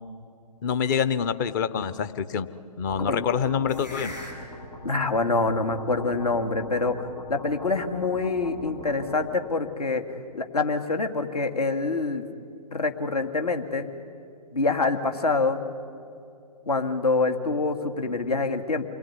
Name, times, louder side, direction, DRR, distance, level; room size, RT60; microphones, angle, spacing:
voice 1, 0.6-2.5 2.8-4.1, left 7 dB, 30° left, 12 dB, 0.9 m, -26 dB
sound 1, 2.9-9.5, equal, 90° left, 7.5 m, -40 dB
voice 2, 4.8-10.0 10.3-12.2 12.7-13.9 14.5-15.6 16.7-18.8, left 3 dB, 65° left, 6 dB, 2.4 m, -26 dB
28.5 x 21.0 x 9.6 m, 2.5 s
figure-of-eight pair, 130°, 21 cm